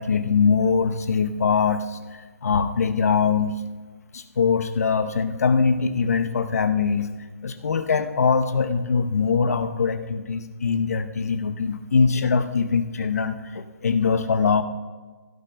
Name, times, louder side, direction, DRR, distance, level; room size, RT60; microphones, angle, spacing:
voice 1, 0.0-3.6 4.1-7.1 7.4-14.6, left 5 dB, 70° left, 8 dB, 0.9 m, -22 dB
16.0 x 13.0 x 2.2 m, 1.3 s
hypercardioid pair, 150°, 9 cm